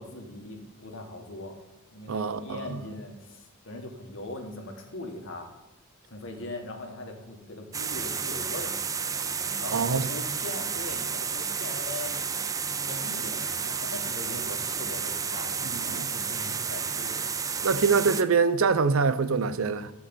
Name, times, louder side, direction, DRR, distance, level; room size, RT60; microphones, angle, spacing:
voice 1, 0.0-1.6 1.9-5.5 6.0-8.7 9.6-12.2 12.7-17.3, left 2 dB, 65° left, 1.7 m, -40 dB
voice 2, 2.1-2.8 9.7-10.1 15.6-16.1 17.6-19.9, right 5 dB, 75° right, 0.6 m, -25 dB
sound 1, 7.7-18.2, right 6 dB, 15° right, 0.3 m, -31 dB
12.5 x 4.7 x 7.1 m
head